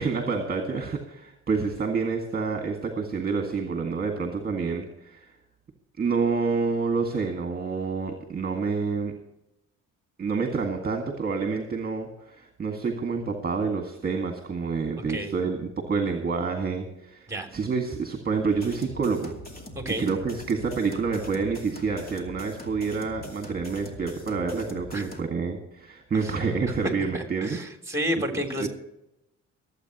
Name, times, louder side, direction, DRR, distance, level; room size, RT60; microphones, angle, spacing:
voice 1, 0.0-5.3 6.0-9.2 10.2-19.4 20.0-27.6 28.3-28.7, right 4 dB, 30° right, 3 dB, 2.0 m, -28 dB
sound 1, 18.5-25.2, left 1 dB, 30° left, 2.7 m, -43 dB
voice 2, 19.7-20.1 24.9-25.1 26.2-26.3 27.1-28.7, equal, 10° right, 4 dB, 3.3 m, -30 dB
23.5 x 8.6 x 3.0 m, 0.83 s
cardioid pair, 90°, 30 cm